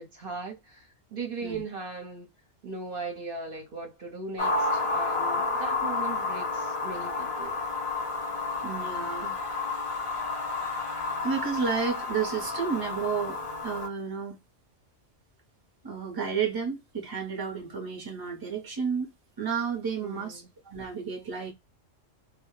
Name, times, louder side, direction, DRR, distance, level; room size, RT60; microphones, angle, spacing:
voice 1, 0.0-2.3 2.6-7.6 20.0-20.5, right 3 dB, 55° right, 0.8 m, -38 dB
sound 1, 4.4-13.9, left 3 dB, 40° left, 0.4 m, -31 dB
voice 2, 8.6-9.4 11.2-13.4 13.6-14.3 15.8-19.1 19.4-21.5, right 6 dB, 30° right, 0.4 m, -31 dB
2.1 x 2.0 x 2.9 m
omnidirectional pair, 1.3 m